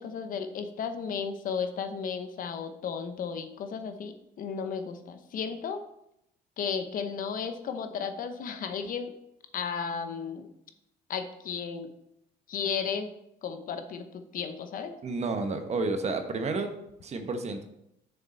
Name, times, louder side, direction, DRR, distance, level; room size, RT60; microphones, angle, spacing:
voice 1, 0.0-5.8 6.6-9.1 9.5-10.5 11.1-11.9 12.5-13.1 13.4-14.9, left 6 dB, 55° left, 8 dB, 0.9 m, -34 dB
voice 2, 15.0-16.7 17.0-17.6, right 3 dB, 40° right, 7 dB, 1.0 m, -30 dB
6.8 x 6.7 x 4.2 m, 0.80 s
cardioid pair, 110°, 17 cm